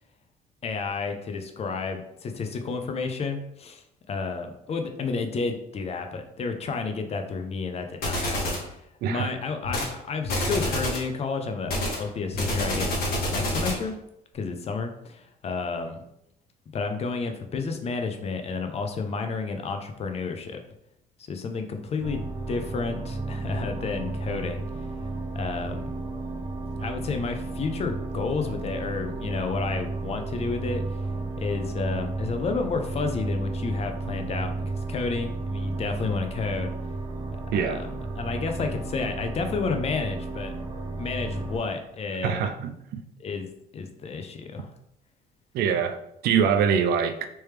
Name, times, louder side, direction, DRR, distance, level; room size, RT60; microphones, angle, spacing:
voice 1, 0.6-8.8 9.1-13.0 13.3-14.0 14.3-16.0 16.7-20.6 21.3-24.6 25.3-25.9 26.8-30.8 31.4-36.7 37.5-37.9 38.2-40.5 41.0-42.5 43.2-43.5 43.7-44.7, left 4 dB, 40° left, 5 dB, 0.5 m, -31 dB
sound 1, 8.0-8.7 9.6-9.9 10.2-11.1 11.7-13.9, left 1 dB, 65° left, 1.3 m, -27 dB
voice 2, 9.0-9.3 37.5-37.8 42.2-43.0 45.5-47.3, right 7 dB, 70° right, 8 dB, 0.4 m, -24 dB
sound 2, 22.0-41.6, right 3 dB, 25° right, 0.6 m, -33 dB
3.2 x 3.0 x 3.2 m, 0.78 s
cardioid pair, 110°, 17 cm